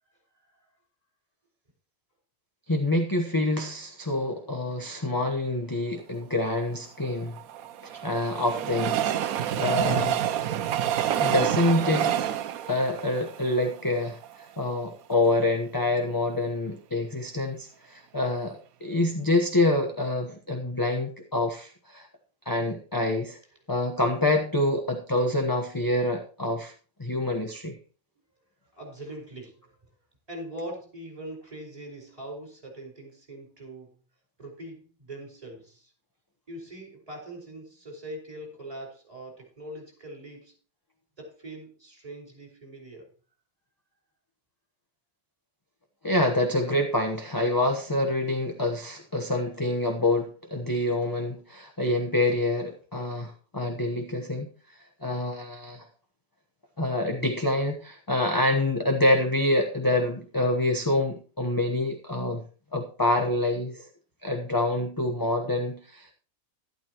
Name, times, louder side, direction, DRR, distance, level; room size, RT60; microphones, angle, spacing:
voice 1, 2.7-7.4 7.8-10.3 11.0-12.2 12.7-22.1 22.4-23.4 23.7-26.7 27.0-27.7 46.0-54.5 55.0-55.9 56.8-62.4 62.7-63.9 64.2-66.1, left 2 dB, 15° left, 3 dB, 0.9 m, -26 dB
Train, 7.0-14.3 14.8-14.9 15.1-15.2, right 10 dB, 90° right, 1.1 m, -28 dB
voice 2, 28.7-29.7 30.3-33.9 34.4-35.9 36.5-40.5 41.2-43.1, right 1 dB, 25° right, 0 dB, 4.9 m, -42 dB
12.0 x 12.0 x 3.0 m, 0.37 s
omnidirectional pair, 1.5 m